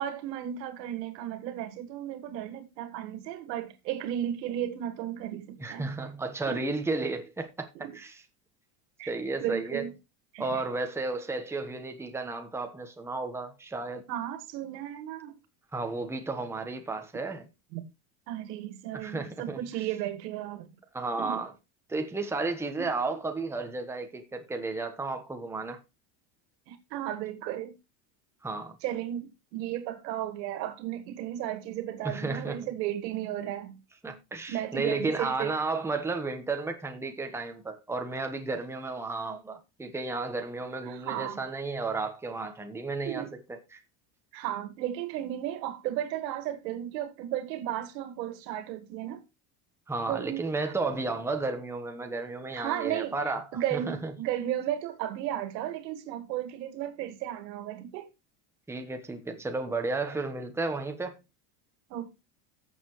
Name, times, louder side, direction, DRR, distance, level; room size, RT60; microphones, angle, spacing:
voice 1, 0.0-5.9 6.5-6.6 7.8-7.9 9.0-9.1 9.4-9.9 10.3-10.6 14.1-15.4 17.7-17.8 18.3-20.7 21.2-21.4 22.8-22.9 26.7-27.7 28.8-33.8 34.5-35.6 40.9-41.4 43.0-43.3 44.3-49.2 50.1-50.4 52.5-53.2 53.5-58.1 61.9-62.1, right 12 dB, 90° right, 1.9 m, -34 dB
voice 2, 5.6-8.2 9.1-9.9 10.4-14.1 15.7-17.5 18.9-19.6 20.9-21.5 21.9-25.8 28.4-28.8 32.0-32.6 34.0-43.8 49.9-54.1 58.7-61.2, right 3 dB, 5° right, 1.1 m, -33 dB
14.5 x 6.9 x 3.2 m
supercardioid pair, 130°, 49 cm